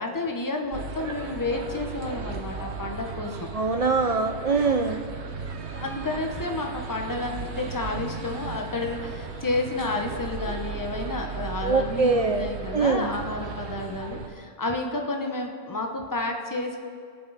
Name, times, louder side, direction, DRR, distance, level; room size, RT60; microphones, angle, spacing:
voice 1, 0.0-3.5 5.7-16.8, left 2 dB, 20° left, 2 dB, 1.0 m, -31 dB
sound 1, 0.7-14.3, right 5 dB, 90° right, 1.2 m, -36 dB
voice 2, 3.5-5.0 11.6-12.5 12.7-13.1, right 4 dB, 45° right, 6 dB, 0.5 m, -23 dB
22.5 x 7.6 x 4.1 m, 2.1 s
omnidirectional pair, 1.1 m